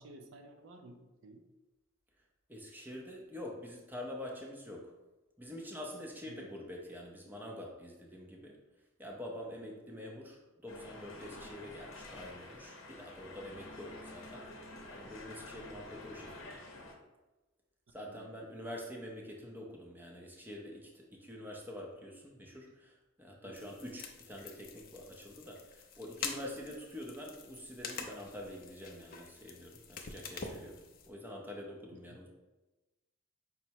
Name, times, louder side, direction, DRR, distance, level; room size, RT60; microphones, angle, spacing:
voice 1, 0.0-1.4 6.3-6.5 9.6-9.7 18.0-18.4 23.4-23.7 31.9-32.0, right 2 dB, 60° right, 4 dB, 0.5 m, -54 dB
voice 2, 2.5-4.9 5.4-8.6 9.0-14.6 14.9-16.7 17.9-32.3, left 1 dB, 10° right, 0 dB, 0.5 m, -46 dB
sound 1, 10.7-16.9, left 2 dB, 65° left, 0.7 m, -49 dB
sound 2, 23.5-31.1, left 5 dB, 45° left, 0.4 m, -46 dB
5.4 x 2.0 x 4.4 m, 1.1 s
head